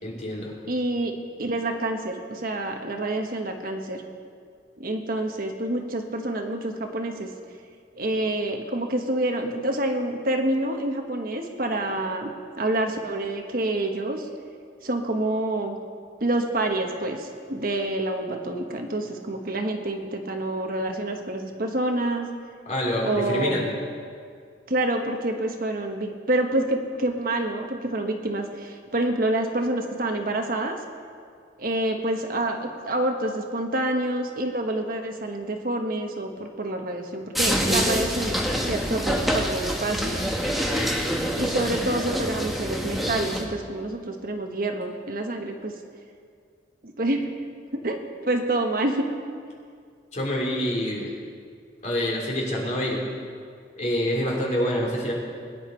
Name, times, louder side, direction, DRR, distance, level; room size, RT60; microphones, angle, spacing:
voice 1, 0.0-0.5 22.6-23.7 40.5-41.0 50.1-51.1 51.8-53.0 53.8-55.1, equal, 40° left, -3 dB, 3.4 m, -27 dB
voice 2, 0.7-1.1 1.4-4.1 4.8-7.3 8.0-12.3 12.6-14.2 14.8-15.8 16.2-22.3 23.0-23.6 24.7-30.8 31.6-38.4 38.7-40.2 41.3-45.7 46.8-47.3 47.7-49.1, right 1 dB, 55° right, 3 dB, 1.2 m, -27 dB
sound 1, 37.3-43.4, equal, ahead, 1.4 m, -26 dB
22.0 x 10.0 x 4.5 m, 2.2 s
head